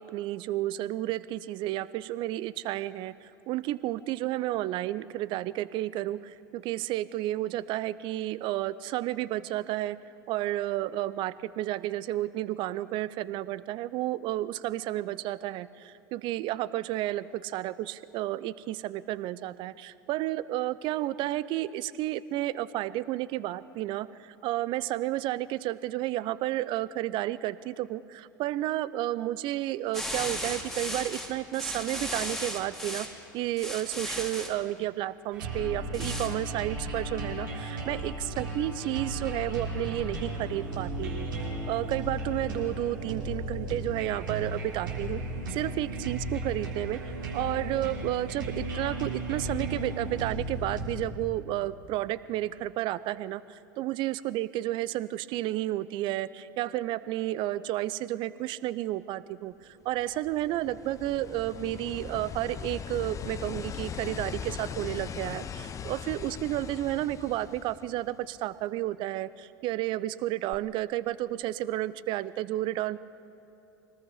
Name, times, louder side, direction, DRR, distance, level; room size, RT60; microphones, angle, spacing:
voice 1, 0.0-10.0 10.3-33.1 33.3-41.3 41.7-45.2 45.5-47.0 47.3-73.0, right 15 dB, 45° right, 17 dB, 0.6 m, -32 dB
sound 1, 29.9-33.1 33.6-34.5 35.9-36.3, equal, ahead, 2.5 m, -35 dB
sound 2, 35.3-51.0, right 1 dB, 75° right, 4.2 m, -35 dB
sound 3, 59.9-68.4 70.5-70.6, left 7 dB, 30° left, 0.8 m, -40 dB
24.5 x 19.0 x 5.7 m, 2.8 s
figure-of-eight pair, 80°, 11 cm